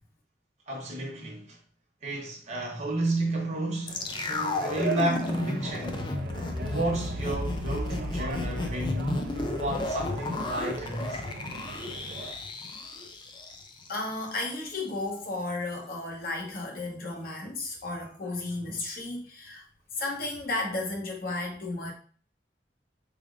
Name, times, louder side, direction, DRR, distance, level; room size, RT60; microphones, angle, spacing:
voice 1, 0.7-1.6 2.0-6.1 6.6-11.3, right 1 dB, 40° right, 1.0 m, -32 dB
sound 1, 3.9-14.0 14.3-14.4, left 2 dB, 25° left, 0.4 m, -33 dB
sound 2, 3.9-12.3, right 4 dB, 60° right, 0.4 m, -40 dB
voice 2, 13.9-19.6 19.9-21.9, left 2 dB, 55° left, 1.0 m, -33 dB
3.8 x 3.4 x 2.4 m
head